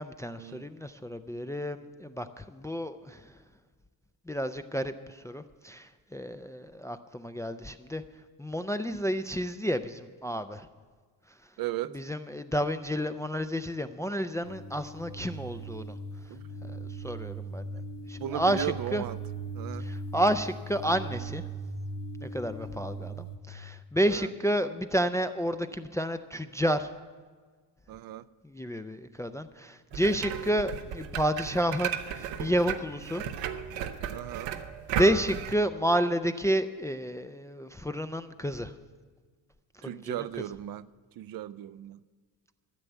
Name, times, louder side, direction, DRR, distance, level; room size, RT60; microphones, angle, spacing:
voice 1, 0.0-3.2 4.3-8.0 8.4-10.7 11.9-15.9 16.6-17.6 18.1-19.0 19.8-21.4 22.2-26.9 28.4-33.2 34.9-38.7 39.8-40.1, equal, 10° left, 0.4 m, -30 dB
voice 2, 11.6-12.0 16.3-16.4 18.2-19.2 19.5-19.9 24.1-24.3 27.9-28.2 34.1-34.5 39.8-40.9 41.2-42.0, right 13 dB, 55° right, 0.5 m, -36 dB
sound 1, 14.4-23.4, right 2 dB, 70° left, 1.1 m, -39 dB
sound 2, 29.9-35.5, right 8 dB, 90° right, 0.9 m, -35 dB
13.5 x 6.8 x 9.1 m
cardioid pair, 105°, 43 cm